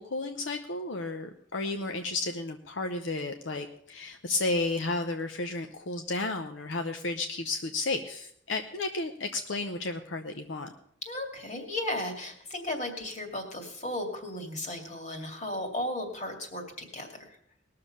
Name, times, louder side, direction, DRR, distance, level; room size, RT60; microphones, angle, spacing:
voice 1, 0.0-10.7, left 2 dB, 75° left, 6 dB, 0.8 m, -32 dB
voice 2, 11.0-17.4, left 1 dB, 40° left, 3 dB, 2.4 m, -35 dB
20.0 x 6.8 x 5.5 m, 0.67 s
head